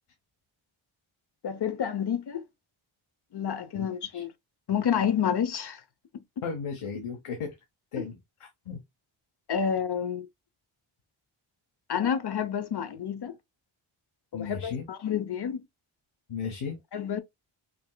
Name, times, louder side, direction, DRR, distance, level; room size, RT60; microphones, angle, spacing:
voice 1, 1.4-2.4 3.3-4.3 4.7-5.8 6.1-6.4 8.0-8.1 9.5-10.3 11.9-13.4 14.3-15.6 16.9-17.2, left 8 dB, 50° left, 0.8 m, -29 dB
voice 2, 6.4-7.6 7.9-8.2 8.7-8.8 14.3-14.9 16.3-16.8, left 6 dB, 85° left, 1.1 m, -34 dB
5.2 x 2.9 x 2.2 m
wide cardioid pair, 130°, 50 cm